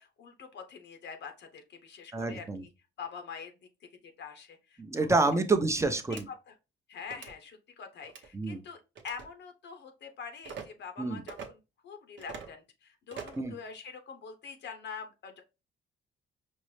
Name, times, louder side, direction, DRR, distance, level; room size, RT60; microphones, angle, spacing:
voice 1, 0.0-2.7 3.0-3.5 4.2-5.1 6.3-6.5 6.9-15.4, left 6 dB, 65° left, 6 dB, 0.7 m, -45 dB
voice 2, 2.1-2.6 4.8-6.3 8.3-8.6 11.0-11.2 13.4-13.5, right 3 dB, 15° right, 7 dB, 0.6 m, -28 dB
sound 1, 6.1-6.2 7.0-7.3 8.0-8.3 9.0-9.3 10.4-10.7 11.3-11.5 12.2-12.5 13.1-13.5, right 6 dB, 70° right, 0.8 m, -43 dB
5.3 x 2.0 x 3.1 m, 0.28 s
cardioid pair, 90°, 20 cm